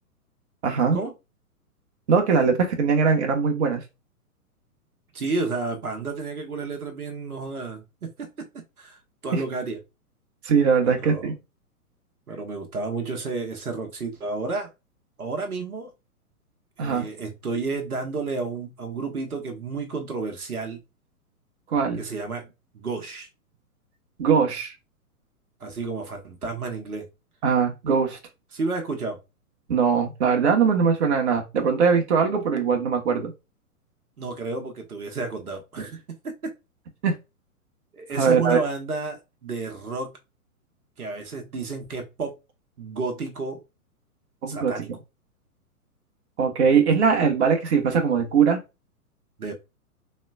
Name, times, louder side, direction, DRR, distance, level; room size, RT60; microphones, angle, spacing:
voice 1, 0.6-1.0 2.1-3.8 9.3-9.4 10.4-11.3 16.8-17.1 21.7-22.0 24.2-24.7 27.4-28.2 29.7-33.3 37.0-37.1 38.1-38.6 44.4-44.7 46.4-48.6, right 6 dB, 45° right, 1.1 m, -21 dB
voice 2, 5.1-9.8 10.8-11.3 12.3-14.7 15.2-15.9 16.8-20.8 22.0-23.3 25.6-27.1 28.5-29.2 34.2-36.5 37.9-40.2 41.0-42.4 42.8-43.6 44.4-44.9 49.4-49.5, right 3 dB, 75° right, 1.1 m, -31 dB
4.1 x 3.3 x 2.3 m
figure-of-eight pair, 115°, 45 cm